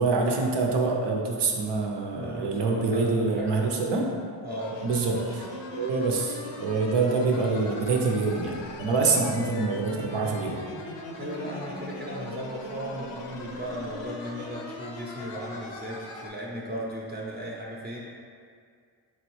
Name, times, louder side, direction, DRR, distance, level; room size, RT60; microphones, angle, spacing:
voice 1, 0.0-4.1 4.8-5.4 5.7-10.6, right 3 dB, 65° right, 0 dB, 0.7 m, -26 dB
voice 2, 2.1-3.6 4.4-5.2 9.1-9.2 11.1-18.0, equal, 20° right, -5 dB, 0.7 m, -37 dB
sound 1, 4.5-16.3, left 2 dB, 70° left, 0.6 m, -39 dB
3.9 x 3.0 x 3.1 m, 2.2 s
cardioid pair, 70°, 46 cm